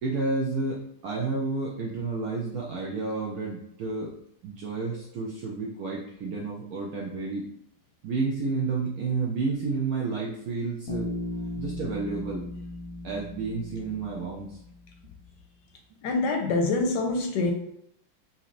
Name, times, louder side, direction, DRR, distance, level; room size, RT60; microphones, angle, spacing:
voice 1, 0.0-4.1 4.4-7.5 8.0-11.1 11.6-12.4 13.0-14.6, right 3 dB, 75° right, -2 dB, 0.8 m, -30 dB
Bass guitar, 10.9-14.9, left 1 dB, 45° left, 0.8 m, -36 dB
voice 2, 16.0-17.5, left 3 dB, 75° left, 3 dB, 1.1 m, -25 dB
3.9 x 2.9 x 2.5 m, 0.73 s
omnidirectional pair, 2.1 m